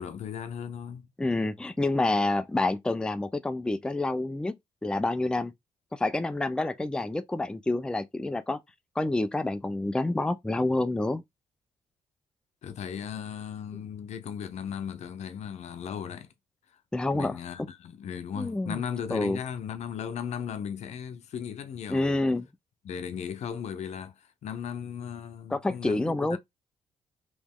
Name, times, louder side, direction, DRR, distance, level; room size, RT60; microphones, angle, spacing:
voice 1, 0.0-1.1 12.6-16.3 17.1-22.2 22.8-26.4, left 8 dB, 70° left, 0.6 m, -37 dB
voice 2, 1.2-4.5 4.8-5.5 5.9-8.6 9.0-11.2 16.9-17.4 18.4-18.8 19.1-19.4 21.9-22.5 25.5-26.4, left 2 dB, 5° left, 0.4 m, -28 dB
3.1 x 3.0 x 3.6 m
cardioid pair, 90°, 12 cm